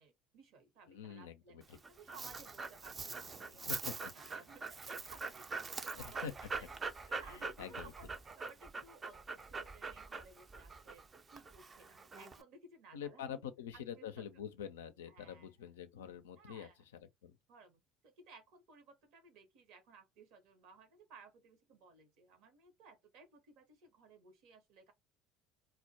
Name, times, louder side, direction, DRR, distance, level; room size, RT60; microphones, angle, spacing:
voice 1, 0.0-1.6 1.9-3.7 4.1-6.7 7.1-8.1 8.4-13.4 13.7-14.2 15.1-15.5 16.4-16.8 17.5-24.9, right 4 dB, 65° right, 0.9 m, -59 dB
voice 2, 0.9-1.8 3.7-4.1 5.9-6.3 7.1-7.9 12.9-16.7 17.0-17.4, left 8 dB, 80° left, 0.4 m, -46 dB
Dog, 1.6-12.4, right 4 dB, 30° right, 0.4 m, -44 dB
2.1 x 2.1 x 2.7 m
hypercardioid pair, 65°, 0 cm